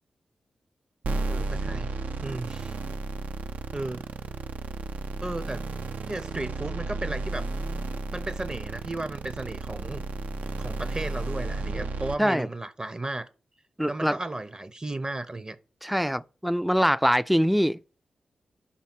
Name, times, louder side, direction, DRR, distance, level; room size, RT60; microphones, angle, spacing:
sound 1, 1.0-12.1, right 3 dB, 70° right, 0.5 m, -33 dB
voice 1, 1.3-1.9 2.2-2.8 3.7-4.0 5.2-5.6 6.1-7.5 8.1-10.0 10.6-13.3 13.9-15.6, right 2 dB, 30° right, 0.7 m, -34 dB
voice 2, 13.8-14.2 15.8-17.8, equal, 5° right, 0.3 m, -23 dB
5.6 x 4.2 x 5.9 m
cardioid pair, 45°, 3 cm